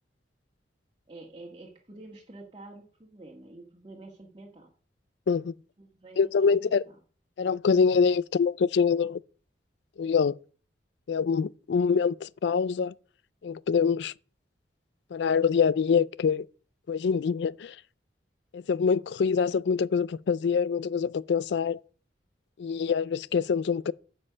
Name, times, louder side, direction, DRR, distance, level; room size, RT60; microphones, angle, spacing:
voice 1, 1.1-4.7 5.8-7.0, right 2 dB, 30° right, 1.5 m, -48 dB
voice 2, 6.2-6.8 7.4-9.2 10.0-10.3 11.1-12.9 13.4-14.1 15.1-16.4 16.9-17.8 18.5-21.8 22.6-23.9, left 6 dB, 70° left, 0.4 m, -25 dB
9.7 x 5.4 x 6.7 m
head